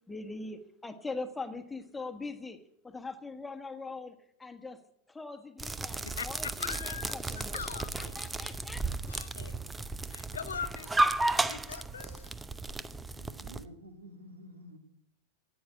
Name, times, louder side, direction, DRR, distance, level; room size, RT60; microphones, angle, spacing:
voice 1, 0.1-2.6 2.8-4.8 5.1-7.6 7.9-8.8, left 3 dB, 10° left, 7 dB, 1.4 m, -42 dB
sound 1, 5.6-13.6, right 2 dB, 10° right, 0.7 m, -33 dB
voice 2, 6.0-8.2 9.1-9.6 10.1-12.3, left 6 dB, 70° left, 12 dB, 0.9 m, -41 dB
sound 2, 7.0-9.5 12.7-12.8, right 5 dB, 50° right, 4.1 m, -56 dB
voice 3, 13.2-14.8, equal, 70° right, 7 dB, 2.3 m, -50 dB
15.0 x 9.4 x 9.7 m, 0.77 s
figure-of-eight pair, 90°, 0 cm